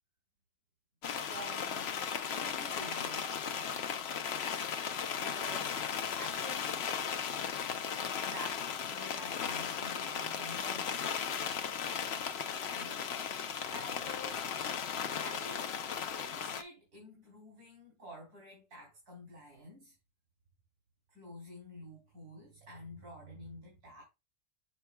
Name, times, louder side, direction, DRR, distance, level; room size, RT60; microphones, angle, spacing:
sound 1, 1.0-16.6, left 7 dB, 55° left, 0.8 m, -36 dB
voice 1, 1.2-3.4 5.2-6.8 8.2-11.0 12.7-14.5 15.2-15.7 16.1-19.9 21.1-24.0, equal, 90° right, 3.4 m, -49 dB
7.9 x 5.5 x 2.2 m
omnidirectional pair, 1.6 m